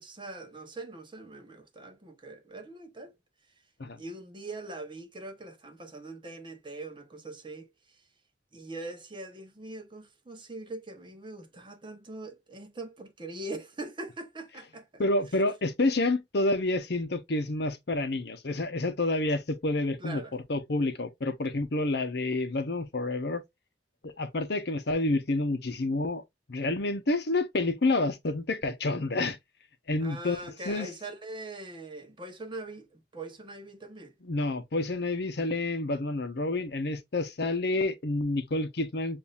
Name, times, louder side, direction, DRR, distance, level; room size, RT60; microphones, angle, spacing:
voice 1, 0.0-3.1 4.0-7.7 8.5-15.0 20.0-20.3 30.0-34.1, right 2 dB, 30° right, 0.9 m, -42 dB
voice 2, 15.0-23.4 24.0-26.2 26.5-29.4 29.9-30.9 34.2-39.2, left 2 dB, 65° left, 0.8 m, -29 dB
7.1 x 2.6 x 2.4 m
head